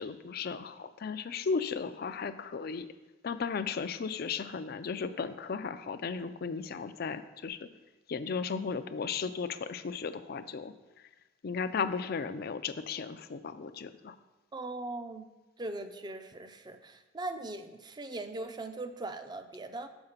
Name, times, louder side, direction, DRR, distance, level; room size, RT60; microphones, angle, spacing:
voice 1, 0.0-2.9 3.2-7.7 8.1-10.7 11.4-14.2, left 5 dB, 55° left, 10 dB, 0.4 m, -35 dB
voice 2, 14.5-15.3 15.6-19.9, right 2 dB, 25° right, 8 dB, 0.5 m, -40 dB
7.1 x 4.8 x 6.6 m, 1.1 s
head